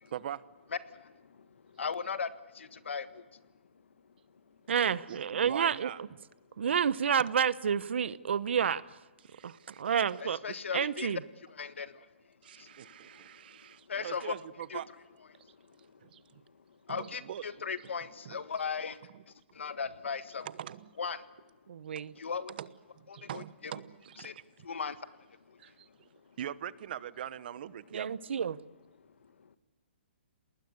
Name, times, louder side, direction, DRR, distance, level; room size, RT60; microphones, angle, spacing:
voice 1, 0.1-0.4 5.1-5.2 5.4-6.0 9.2-9.8 12.4-14.9 16.0-16.2 16.9-17.4 17.8-17.9 18.2-18.4 19.1-19.2 20.4-20.9 22.5-24.3 25.6-26.1 26.4-28.2, right 10 dB, 55° right, 1.1 m, -42 dB
voice 2, 1.8-3.2 10.4-11.1 11.6-12.0 12.6-12.7 13.9-14.3 14.7-14.8 16.9-19.0 19.5-20.5 21.0-21.2 22.2-22.5 23.2-23.7 24.2-24.3 24.6-25.0, left 6 dB, 85° left, 1.6 m, -37 dB
voice 3, 4.7-5.9 6.6-9.0 9.4-10.4 10.7-11.2 21.7-22.1 27.9-28.6, right 7 dB, 70° right, 1.0 m, -29 dB
29.5 x 20.0 x 8.2 m
hypercardioid pair, 150°, 6 cm